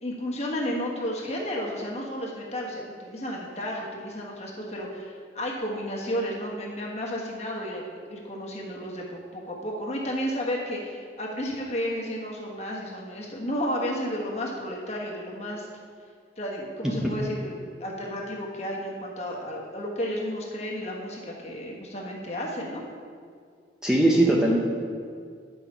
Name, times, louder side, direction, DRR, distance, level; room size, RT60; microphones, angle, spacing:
voice 1, 0.0-15.7 16.4-22.8, equal, 40° left, -2 dB, 1.4 m, -32 dB
voice 2, 16.8-17.2 23.8-24.6, right 1 dB, 5° right, -3 dB, 0.7 m, -21 dB
10.0 x 5.9 x 4.5 m, 2.1 s
head